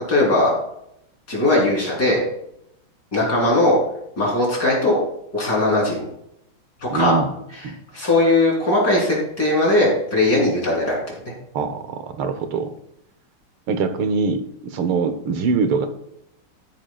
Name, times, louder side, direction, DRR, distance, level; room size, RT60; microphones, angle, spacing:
voice 1, 0.1-0.5 1.3-2.2 3.1-3.8 4.2-5.0 5.3-6.0 6.8-7.2 7.6-11.0, left 2 dB, 50° left, -3 dB, 4.0 m, -19 dB
voice 2, 6.9-7.3 7.6-7.7 11.5-12.7 13.7-15.9, right 5 dB, 85° right, 9 dB, 1.8 m, -23 dB
13.5 x 10.0 x 2.3 m, 0.76 s
omnidirectional pair, 2.3 m